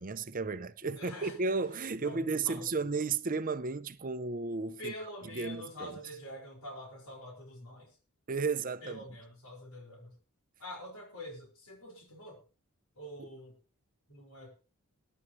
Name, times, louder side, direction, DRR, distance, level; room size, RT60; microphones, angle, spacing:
voice 1, 0.0-5.9 8.3-9.0 13.2-13.3, right 4 dB, 40° right, 0.7 m, -34 dB
voice 2, 0.8-1.4 2.0-2.7 4.8-8.0 8.8-10.1 10.6-12.4 13.0-13.6 14.1-14.5, equal, 80° left, 5.6 m, -46 dB
21.5 x 11.0 x 3.2 m
head